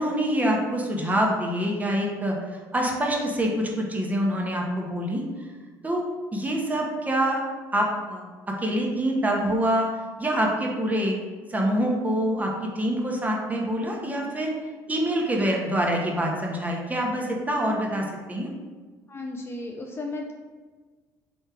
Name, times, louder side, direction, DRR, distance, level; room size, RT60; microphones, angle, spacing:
voice 1, 0.0-5.5 5.8-6.0 6.3-7.4 7.7-8.3 8.6-9.9 10.2-11.2 11.5-14.5 14.9-18.5, equal, 20° right, -1 dB, 1.0 m, -25 dB
voice 2, 19.1-20.3, left 2 dB, 30° left, 1 dB, 0.5 m, -34 dB
3.4 x 3.1 x 4.8 m, 1.4 s
supercardioid pair, 80°, 8 cm